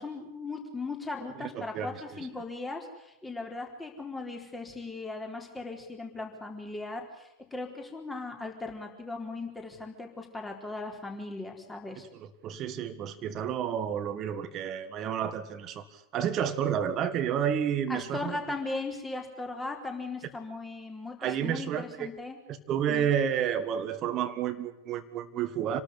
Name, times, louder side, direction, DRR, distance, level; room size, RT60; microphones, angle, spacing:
voice 1, 0.0-12.0 17.9-22.4 22.9-23.1, left 3 dB, 10° left, 3 dB, 4.2 m, -38 dB
voice 2, 1.4-2.0 12.1-18.4 21.2-22.1 22.5-25.8, right 9 dB, 35° right, 10 dB, 1.7 m, -30 dB
27.0 x 13.0 x 10.0 m, 0.86 s
figure-of-eight pair, 90°, 0 cm